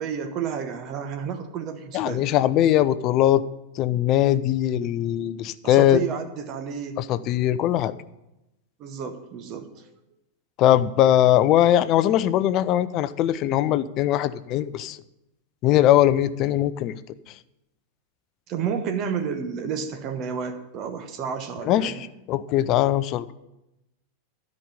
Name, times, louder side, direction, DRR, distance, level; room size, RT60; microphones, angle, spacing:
voice 1, 0.0-2.3 5.6-7.0 8.8-9.9 18.5-22.0, right 7 dB, 35° right, 8 dB, 1.0 m, -31 dB
voice 2, 1.9-3.4 3.8-6.0 7.0-7.9 10.6-15.0 15.6-16.9 21.6-23.3, left 12 dB, 40° left, 15 dB, 0.5 m, -21 dB
13.0 x 5.3 x 8.2 m, 0.92 s
figure-of-eight pair, 90°, 0 cm